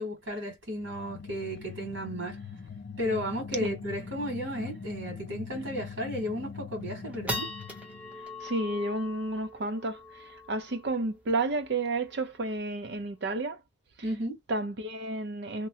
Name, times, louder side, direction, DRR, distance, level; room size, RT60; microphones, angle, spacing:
voice 1, 0.0-2.4 3.0-7.5 14.0-14.4, equal, 85° right, 1.7 m, -34 dB
sound 1, 0.8-8.1, left 6 dB, 60° left, 0.4 m, -42 dB
sound 2, 3.8-3.9 4.1-4.2 4.6-4.9 5.4-5.5 6.0-6.4 6.8-13.4, left 1 dB, 10° right, 0.7 m, -41 dB
voice 2, 8.4-13.6 14.5-15.7, right 2 dB, 60° right, 0.6 m, -31 dB
2.9 x 2.1 x 2.7 m
head